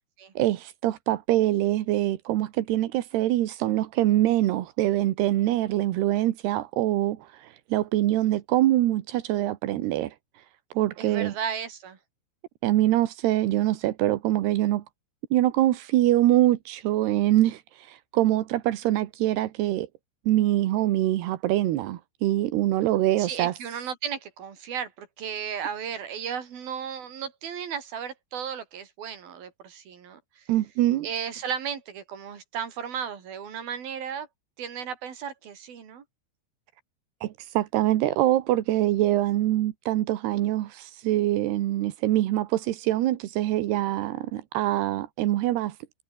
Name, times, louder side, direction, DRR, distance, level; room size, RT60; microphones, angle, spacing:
voice 1, 0.4-10.4 10.7-11.3 12.6-14.8 15.3-19.9 20.3-23.5 30.5-31.1 37.2-45.8, right 14 dB, 70° right, 2.9 m, -24 dB
voice 2, 11.0-12.0 23.2-30.4 31.0-34.3 34.6-36.0, right 8 dB, 50° right, 4.8 m, -35 dB
omnidirectional pair, 5.7 m